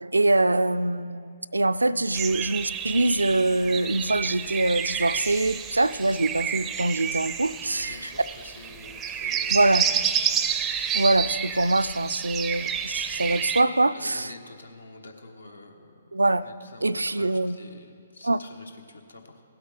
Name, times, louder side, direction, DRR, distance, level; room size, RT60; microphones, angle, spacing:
voice 1, 0.0-8.1 9.5-9.8 10.9-14.3 16.1-16.4 16.8-17.6 18.2-18.4, right 2 dB, 80° right, 14 dB, 0.3 m, -24 dB
sound 1, 2.1-13.6, right 8 dB, 15° right, 0.5 m, -30 dB
voice 2, 7.8-10.1 13.9-19.4, left 2 dB, 75° left, 5 dB, 1.2 m, -47 dB
16.5 x 8.1 x 5.0 m, 2.3 s
figure-of-eight pair, 130°, 0 cm